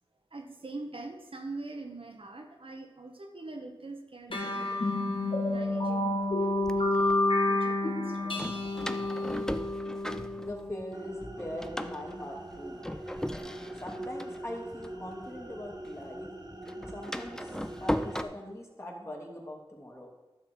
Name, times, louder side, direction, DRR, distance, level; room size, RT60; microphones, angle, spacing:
voice 1, 0.3-5.0 5.5-9.3, right 2 dB, 70° right, 3 dB, 1.1 m, -44 dB
sound 1, 4.3-11.2, left 2 dB, 65° left, 1.5 m, -29 dB
Door, 5.2-5.3 6.1-7.2 8.4-10.9 11.2-15.7 16.0-18.2, equal, 5° left, 0.5 m, -37 dB
voice 2, 10.4-12.8 13.4-16.3 16.7-20.1, left 1 dB, 30° left, -2 dB, 2.4 m, -42 dB
sound 2, 10.9-18.3, right 1 dB, 45° right, 1.5 m, -43 dB
11.5 x 6.6 x 4.4 m, 1.2 s
wide cardioid pair, 55°, 10 cm